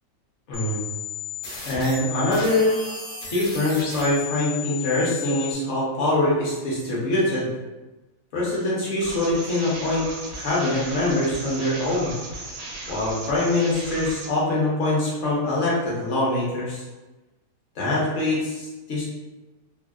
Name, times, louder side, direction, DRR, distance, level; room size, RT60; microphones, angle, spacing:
sound 1, 0.5-5.5, left 6 dB, 90° left, 1.4 m, -34 dB
voice 1, 0.5-0.8 1.6-2.8 3.3-7.5 8.3-10.0 10.4-12.1 12.8-16.8 17.8-19.0, left 1 dB, 50° left, -6 dB, 1.0 m, -23 dB
sound 2, 9.0-14.3, right 2 dB, 70° right, 0.9 m, -36 dB
3.3 x 2.2 x 2.3 m, 1.1 s
omnidirectional pair, 1.9 m